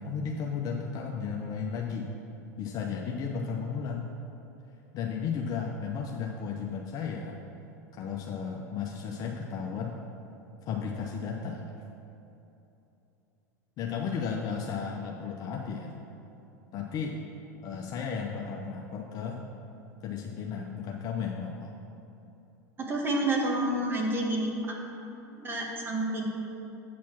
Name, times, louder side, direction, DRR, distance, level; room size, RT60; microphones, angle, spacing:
voice 1, 0.0-2.1 2.6-4.2 4.9-7.4 7.9-10.0 10.7-11.6 13.8-15.9 16.7-17.2 17.6-19.4 20.0-21.8, left 6 dB, 45° left, 1 dB, 0.6 m, -34 dB
voice 2, 22.8-24.7 25.4-26.3, right 1 dB, 25° right, 0 dB, 1.5 m, -29 dB
8.3 x 4.3 x 6.0 m, 2.9 s
hypercardioid pair, 90°, 9 cm